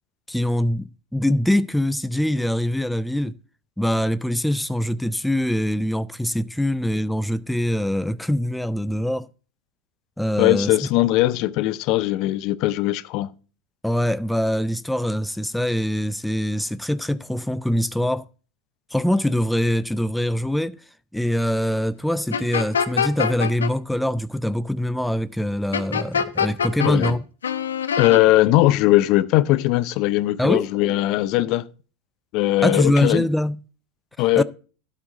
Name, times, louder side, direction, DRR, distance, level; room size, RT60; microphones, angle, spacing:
voice 1, 0.3-3.4 3.8-9.3 10.2-10.7 13.8-18.3 18.9-20.8 21.1-27.2 30.4-30.7 32.6-33.6 34.4-34.5, left 1 dB, 5° left, 0.4 m, -23 dB
voice 2, 10.4-13.3 26.8-27.1 28.0-31.7 32.3-33.3 34.2-34.4, left 16 dB, 55° left, 0.6 m, -19 dB
sound 1, 22.3-23.7 25.7-27.1 27.4-28.2, left 7 dB, 90° left, 0.9 m, -24 dB
12.0 x 7.4 x 3.7 m
hypercardioid pair, 95°, 0 cm